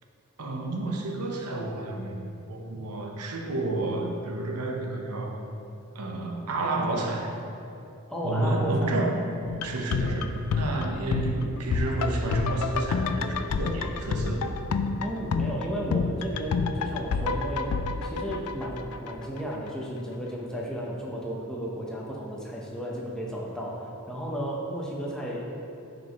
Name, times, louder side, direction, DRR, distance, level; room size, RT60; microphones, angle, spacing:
voice 1, 0.4-5.4 5.9-7.3 8.2-9.2 9.6-14.5, right 2 dB, 85° right, 1 dB, 0.9 m, -30 dB
voice 2, 8.1-9.0 15.0-17.8 18.0-23.8 24.1-25.5, equal, 5° left, -4 dB, 0.9 m, -33 dB
sound 1, 9.5-19.4 19.7-19.8, left 4 dB, 85° left, 0.4 m, -29 dB
10.5 x 5.2 x 3.1 m, 2.8 s
head